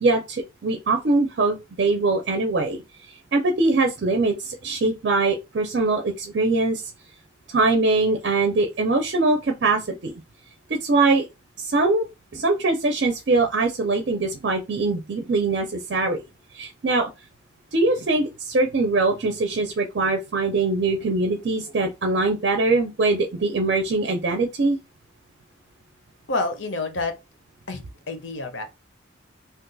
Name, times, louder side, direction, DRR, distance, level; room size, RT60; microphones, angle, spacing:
voice 1, 0.0-2.8 3.3-6.9 7.5-10.1 10.7-11.3 11.6-12.0 12.3-16.2 16.5-17.1 17.7-24.8, right 3 dB, 55° right, 0.5 m, -22 dB
voice 2, 26.3-27.1 27.7-28.6, left 3 dB, 70° left, 0.7 m, -28 dB
2.5 x 2.3 x 3.8 m
head